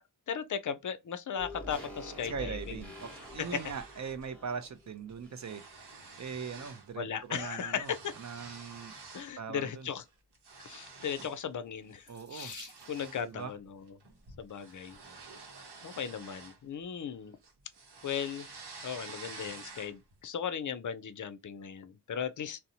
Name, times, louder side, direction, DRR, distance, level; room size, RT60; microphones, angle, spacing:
voice 1, 0.3-2.8 3.5-3.6 7.0-8.1 9.1-10.0 10.6-13.9 14.4-15.0 15.8-17.4 18.0-18.5 18.8-22.6, left 7 dB, 50° left, 0.4 m, -37 dB
sound 1, 1.4-5.9 6.1-6.2, left 1 dB, 5° left, 0.9 m, -47 dB
voice 2, 2.2-5.6 6.2-7.9 8.2-8.9 9.4-9.9 12.1-12.5 13.2-13.5, right 6 dB, 45° right, 0.4 m, -40 dB
sound 2, 2.6-4.3 4.6-4.8 5.1-6.9 7.2-9.4 9.8-11.5 11.9-12.1 12.5-17.1 17.4-20.1, right 4 dB, 75° right, 0.8 m, -50 dB
Water tap faucet / Sink (filling or washing), 12.0-13.3 14.3-14.7 15.4-15.5 15.9-16.0, right 1 dB, 25° right, 0.8 m, -52 dB
2.6 x 2.0 x 2.7 m
wide cardioid pair, 70°, 40 cm